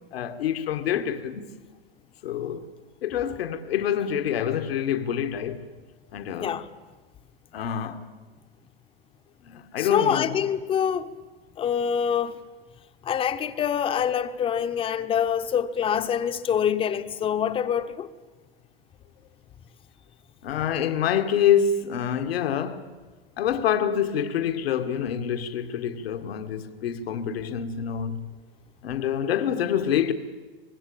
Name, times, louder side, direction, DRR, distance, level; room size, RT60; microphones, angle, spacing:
voice 1, 0.1-1.5 2.2-2.6 3.0-5.6 6.1-6.5 7.5-8.1 9.4-10.3 20.4-22.8 23.4-28.3 28.8-30.1, left 8 dB, 80° left, 1.8 m, -26 dB
voice 2, 9.8-11.1 11.6-12.4 13.0-18.1, left 8 dB, 20° left, 0.9 m, -25 dB
25.5 x 20.0 x 8.7 m
supercardioid pair, 150°, 30 cm